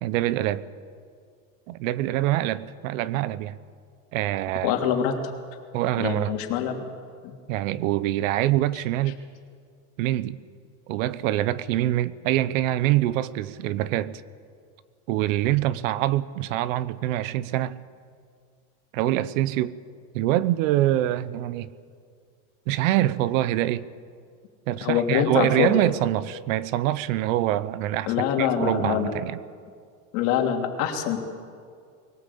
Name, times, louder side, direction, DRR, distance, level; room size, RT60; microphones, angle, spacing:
voice 1, 0.0-0.6 1.7-3.6 4.1-4.7 5.7-6.4 7.5-9.2 10.0-10.4 10.9-14.2 15.1-17.8 18.9-19.8 20.1-21.7 22.7-23.8 24.7-29.4, right 14 dB, 75° right, 1.0 m, -25 dB
voice 2, 4.6-5.1 6.0-6.9 7.2-7.3 24.8-25.7 28.1-29.1 30.1-31.2, left 9 dB, 55° left, 3.0 m, -24 dB
21.5 x 18.5 x 8.5 m
supercardioid pair, 150°, 40 cm